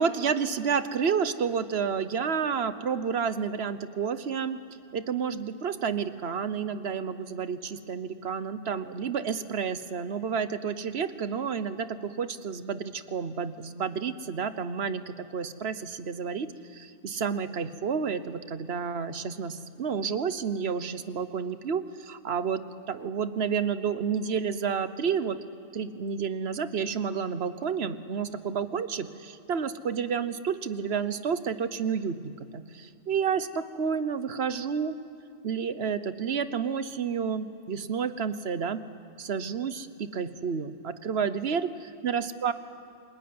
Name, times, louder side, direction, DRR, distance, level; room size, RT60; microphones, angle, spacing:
voice 1, 0.0-4.6 4.9-25.4 25.7-35.0 35.4-38.8 39.2-42.5, right 6 dB, 65° right, 12 dB, 1.2 m, -30 dB
30.0 x 20.0 x 9.6 m, 2.4 s
omnidirectional pair, 1.2 m